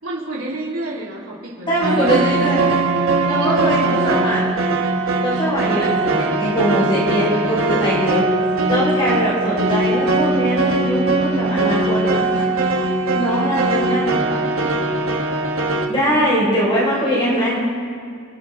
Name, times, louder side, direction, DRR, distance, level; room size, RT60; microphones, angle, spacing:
voice 1, 0.0-2.4 3.3-4.4 13.1-14.8, right 2 dB, 85° right, -7 dB, 3.5 m, -30 dB
voice 2, 1.7-2.6 3.2-4.5 5.2-8.3 8.7-12.5 13.1-14.1 15.9-17.6, equal, 25° left, -6 dB, 4.9 m, -21 dB
sound 1, 1.8-15.9, right 3 dB, 70° right, 1.4 m, -20 dB
28.5 x 10.5 x 3.7 m, 2.3 s
head